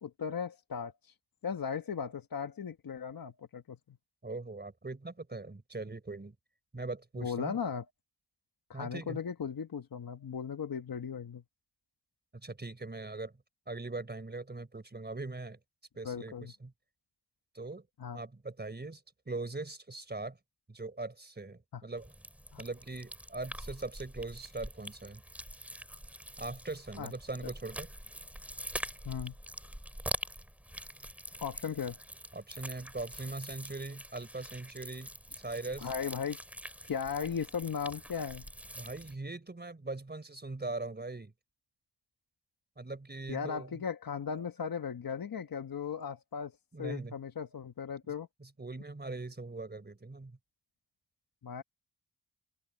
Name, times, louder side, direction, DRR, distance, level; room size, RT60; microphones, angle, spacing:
voice 1, 0.0-1.1 1.4-4.0 7.2-7.8 8.7-11.4 16.0-16.5 18.0-18.2 21.7-21.8 22.5-22.6 27.0-27.1 29.0-29.3 31.4-32.0 35.8-36.4 36.8-38.5 43.3-46.5 46.8-48.3 51.4-51.6, left 7 dB, 50° left, 1.2 m, -37 dB
voice 2, 4.2-6.3 6.7-7.6 8.7-9.2 12.3-13.3 13.7-15.6 16.0-16.7 17.5-17.9 18.1-20.4 20.7-22.1 22.6-25.2 26.4-27.9 32.3-35.9 38.8-41.3 42.8-43.8 46.7-47.2 48.4-50.4, right 3 dB, 25° right, 4.0 m, -41 dB
sound 1, 22.0-39.1, equal, 5° right, 2.7 m, -45 dB
open air
wide cardioid pair, 155°, 43 cm